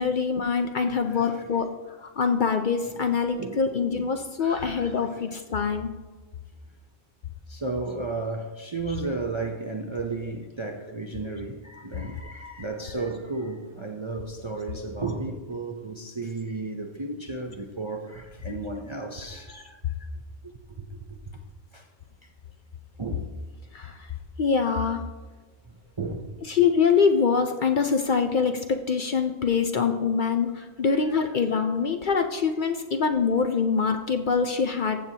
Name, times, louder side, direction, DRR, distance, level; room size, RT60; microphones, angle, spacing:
voice 1, 0.0-1.7 2.0-5.9 8.0-8.1 10.2-10.3 12.9-13.0 14.1-14.4 14.7-14.8 19.5-19.6 23.7-24.1 24.4-25.0 26.4-35.0, left 5 dB, 55° left, 0.6 m, -24 dB
voice 2, 0.9-1.5 2.8-3.7 3.9-4.1 4.4-5.3 7.5-19.8 21.7-21.9 22.2-22.3 23.0-23.3 25.7-26.3 30.9-31.3, right 3 dB, 35° right, 0.5 m, -34 dB
15.0 x 7.5 x 2.8 m
omnidirectional pair, 1.2 m